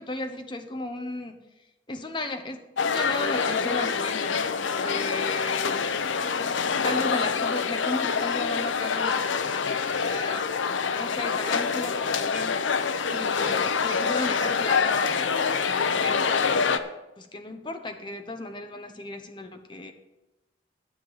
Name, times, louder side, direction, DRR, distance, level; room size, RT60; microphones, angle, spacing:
voice 1, 0.0-1.4 1.9-12.8 13.1-16.9 17.2-19.9, left 2 dB, 25° left, 5 dB, 1.0 m, -35 dB
sound 1, 2.8-16.8, left 5 dB, 80° left, 0.7 m, -26 dB
10.0 x 7.5 x 6.6 m, 0.99 s
head